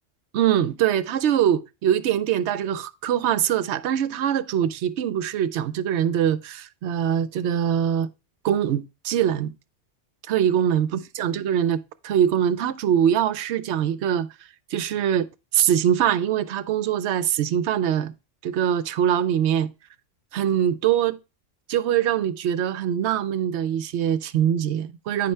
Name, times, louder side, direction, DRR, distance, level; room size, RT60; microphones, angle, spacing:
voice 1, 0.3-8.1 8.4-9.5 10.3-14.3 14.7-15.3 15.5-18.1 18.4-19.7 20.3-21.2 21.7-25.3, right 9 dB, 70° right, 0.8 m, -23 dB
9.2 x 5.5 x 3.2 m
omnidirectional pair, 1.3 m